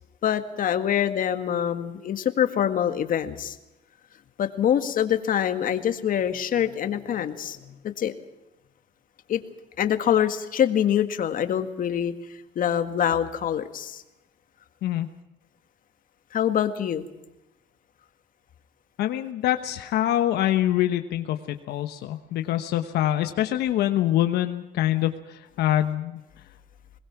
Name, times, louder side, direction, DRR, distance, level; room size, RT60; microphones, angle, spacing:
voice 1, 0.2-3.6 4.4-8.1 9.3-9.4 9.8-12.1 12.6-14.0 16.3-17.1, left 9 dB, 55° left, 8 dB, 1.9 m, -25 dB
voice 2, 19.0-26.2, left 13 dB, 75° left, 7 dB, 1.1 m, -25 dB
22.0 x 20.0 x 5.9 m, 0.97 s
cardioid pair, 110°, 17 cm